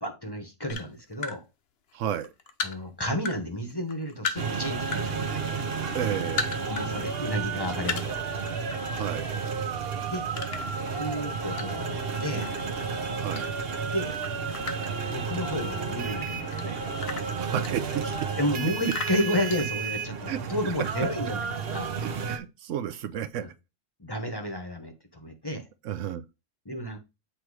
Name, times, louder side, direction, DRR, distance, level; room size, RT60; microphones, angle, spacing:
voice 1, 0.0-1.4 2.6-5.4 6.7-8.2 10.0-10.3 10.9-12.5 13.9-14.2 15.1-16.8 18.4-21.9 23.4-23.5 24.0-25.7 26.6-27.0, left 1 dB, 20° left, 1.0 m, -32 dB
sound 1, 0.7-1.4 1.9-3.4 3.7-5.1 5.4-6.9 7.2-7.3 7.8-8.8 9.1-9.4 10.3-12.0 12.4-13.8 14.1-15.7 16.2-18.3 18.8-20.2, left 4 dB, 55° left, 0.9 m, -36 dB
voice 2, 1.9-2.3 5.9-6.7 8.9-9.3 13.1-13.5 17.4-18.3 20.3-20.4 22.0-23.5 25.8-26.2, right 10 dB, 80° right, 0.9 m, -32 dB
sound 2, 4.4-22.4, right 5 dB, 55° right, 1.0 m, -32 dB
8.1 x 3.1 x 4.7 m
omnidirectional pair, 1.3 m